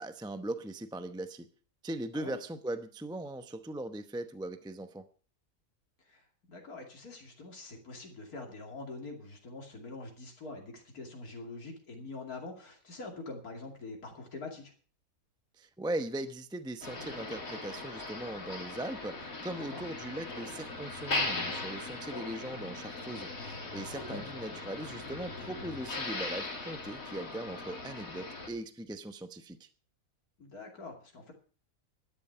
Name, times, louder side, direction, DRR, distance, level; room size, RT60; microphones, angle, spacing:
voice 1, 0.0-1.5 1.8-5.1 15.6-29.7, right 1 dB, 5° right, 9 dB, 0.6 m, -39 dB
voice 2, 6.0-14.7 19.5-19.8 24.1-24.2 30.4-31.3, left 3 dB, 85° left, 1 dB, 3.0 m, -45 dB
Motor vehicle (road), 16.8-28.5, left 2 dB, 70° left, 3.3 m, -39 dB
12.5 x 11.0 x 5.7 m, 0.39 s
omnidirectional pair, 1.5 m